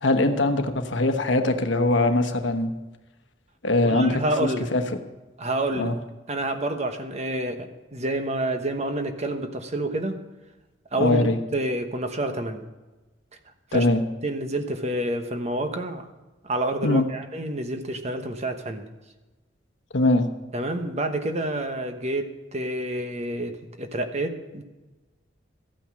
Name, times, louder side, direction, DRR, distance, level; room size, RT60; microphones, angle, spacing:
voice 1, 0.0-2.7 3.6-4.8 5.8-5.9 11.0-11.4 13.7-14.0 16.8-17.0 19.9-20.3, left 2 dB, 70° left, 7 dB, 1.1 m, -22 dB
voice 2, 3.8-4.7 5.4-5.9 6.3-10.2 10.9-12.7 13.7-13.9 14.2-16.1 16.4-18.9 20.5-24.6, right 1 dB, 35° right, 7 dB, 1.1 m, -28 dB
14.0 x 8.9 x 6.2 m, 1.1 s
head